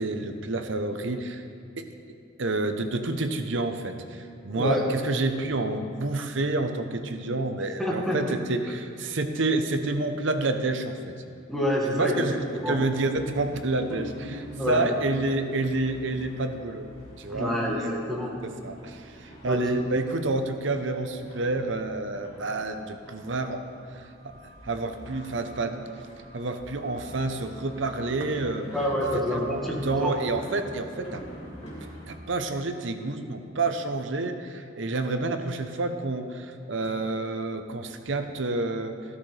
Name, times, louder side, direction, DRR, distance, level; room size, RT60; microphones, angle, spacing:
voice 1, 0.0-1.4 1.8-1.9 2.4-11.1 12.0-16.9 17.2-23.6 23.9-24.1 24.6-25.8 26.3-28.7 29.3-31.2 32.1-39.0, right 2 dB, 65° right, 7 dB, 0.8 m, -29 dB
voice 2, 4.5-4.9 7.8-8.2 11.5-12.4 12.6-12.8 13.8-14.8 17.3-18.4 19.5-19.6 28.7-30.1, equal, ahead, -4 dB, 1.8 m, -28 dB
sound 1, 12.2-32.2, equal, 30° left, 2.6 m, -47 dB
13.5 x 12.5 x 3.3 m, 2.5 s
head